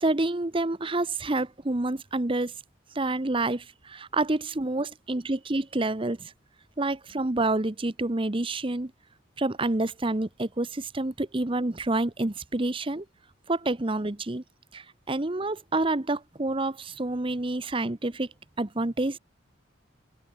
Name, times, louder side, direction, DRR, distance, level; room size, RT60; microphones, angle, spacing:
voice 1, 0.0-2.5 2.9-6.3 6.8-8.9 9.4-13.0 13.5-14.4 14.7-18.3 18.6-19.2, right 2 dB, 25° right, 0.9 m, -28 dB
open air
head